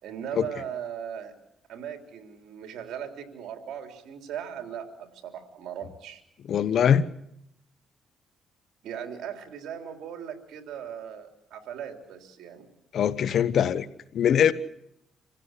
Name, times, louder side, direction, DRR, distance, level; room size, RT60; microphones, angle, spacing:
voice 1, 0.0-1.3 1.7-6.2 8.8-12.7, right 8 dB, 80° right, 5 dB, 3.7 m, -38 dB
voice 2, 6.5-7.1 12.9-13.9 14.1-14.5, left 8 dB, 65° left, 15 dB, 1.1 m, -22 dB
27.5 x 16.0 x 8.4 m, 0.79 s
cardioid pair, 90°, 0 cm